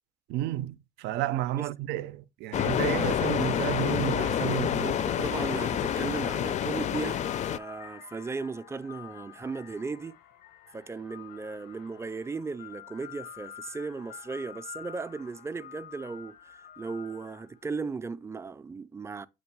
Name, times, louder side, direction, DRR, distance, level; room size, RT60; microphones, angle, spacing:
voice 1, 0.3-5.3, right 14 dB, 90° right, 0.5 m, -32 dB
sound 1, 2.5-7.6, left 9 dB, 45° left, 0.4 m, -28 dB
voice 2, 4.8-10.2 10.7-19.3, right 4 dB, 15° right, 0.4 m, -36 dB
sound 2, 5.7-17.7, left 11 dB, 90° left, 0.7 m, -48 dB
7.8 x 3.0 x 4.6 m
cardioid pair, 110°, 17 cm